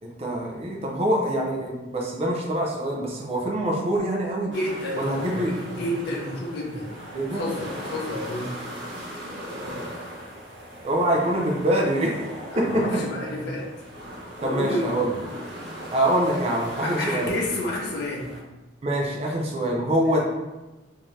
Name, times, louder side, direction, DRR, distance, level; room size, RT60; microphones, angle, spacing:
voice 1, 0.0-4.5 4.9-5.5 7.1-7.4 10.8-12.1 12.6-13.0 14.4-15.1 15.9-17.4 18.8-20.2, right 1 dB, 30° right, -1 dB, 0.5 m, -25 dB
voice 2, 4.4-6.9 7.3-8.5 12.5-13.7 14.4-14.9 16.8-18.3 20.0-20.2, left 1 dB, 55° left, -3 dB, 0.6 m, -30 dB
sound 1, 4.5-18.4, equal, 60° right, 1.0 m, -39 dB
3.6 x 2.7 x 3.1 m, 1.1 s
head